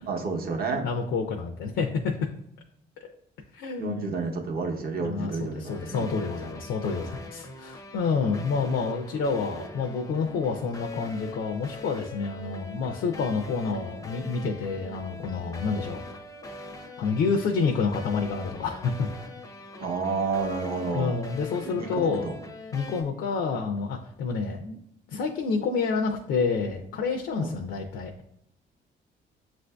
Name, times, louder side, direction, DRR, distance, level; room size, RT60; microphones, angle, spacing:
voice 1, 0.1-0.9 3.8-6.2 19.8-21.2 21.6-22.4 27.3-27.6, right 4 dB, 50° right, 3 dB, 0.7 m, -30 dB
voice 2, 0.7-2.1 3.5-4.1 5.0-16.0 17.0-19.1 20.9-22.3 22.7-24.8 25.1-28.1, left 5 dB, 70° left, 2 dB, 0.4 m, -28 dB
sound 1, 5.7-23.0, left 3 dB, 15° left, 0.5 m, -42 dB
7.3 x 2.5 x 2.2 m, 0.73 s
cardioid pair, 90°, 20 cm